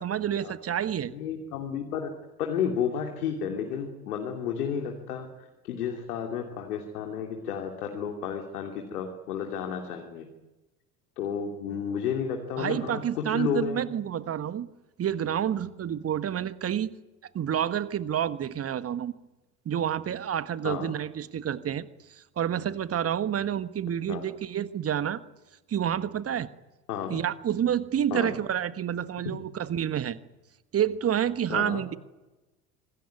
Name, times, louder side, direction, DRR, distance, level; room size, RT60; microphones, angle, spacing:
voice 1, 0.0-1.1 12.6-14.7 15.0-16.9 17.3-19.1 19.6-21.9 22.4-25.2 25.7-26.5 27.1-30.2 30.7-32.0, right 9 dB, 30° right, 14 dB, 1.4 m, -29 dB
voice 2, 1.1-2.1 2.4-5.3 5.6-10.2 11.2-13.8 20.6-20.9 24.1-24.2 26.9-27.2 28.1-28.3 29.2-29.4 31.5-31.8, left 7 dB, 70° left, 3 dB, 3.1 m, -32 dB
26.0 x 20.0 x 9.6 m, 1.1 s
figure-of-eight pair, 60°, 46 cm